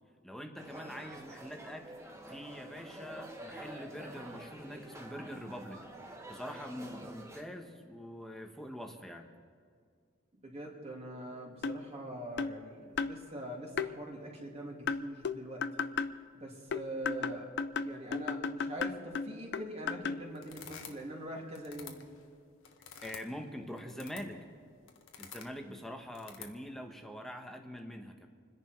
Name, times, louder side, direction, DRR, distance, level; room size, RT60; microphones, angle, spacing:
voice 1, 0.2-1.9 2.3-5.8 6.3-9.3 23.0-24.4 25.2-28.3, equal, ahead, 3 dB, 1.2 m, -44 dB
sound 1, 0.6-7.4, right 1 dB, 15° right, 1.5 m, -48 dB
voice 2, 10.4-15.7 16.3-22.0, right 1 dB, 30° right, -1 dB, 2.9 m, -43 dB
sound 2, 11.6-11.8 12.4-12.6 13.0-13.2 13.8-13.9 14.9-16.2 16.7-20.3, left 5 dB, 60° left, 0.5 m, -34 dB
sound 3, 20.3-21.2 21.5-23.3 23.8-24.4 24.9-25.5 26.1-26.6, left 7 dB, 85° left, 1.6 m, -49 dB
27.5 x 10.5 x 4.6 m, 2.2 s
head